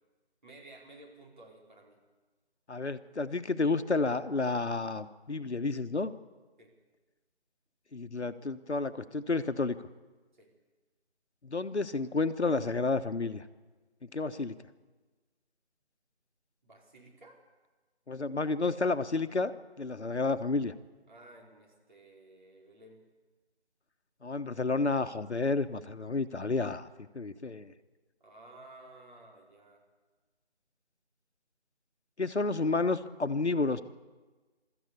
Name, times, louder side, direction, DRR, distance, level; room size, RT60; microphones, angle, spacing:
voice 1, 0.4-2.0 6.6-6.7 10.3-10.5 16.6-17.4 21.1-23.0 28.2-29.8, right 2 dB, 45° right, -1 dB, 4.7 m, -54 dB
voice 2, 2.7-6.1 7.9-9.8 11.4-13.4 14.1-14.5 18.1-19.5 19.8-20.7 24.2-27.7 32.2-33.8, left 3 dB, 75° left, 10 dB, 1.3 m, -31 dB
22.5 x 14.0 x 8.5 m, 1.3 s
figure-of-eight pair, 165°, 34 cm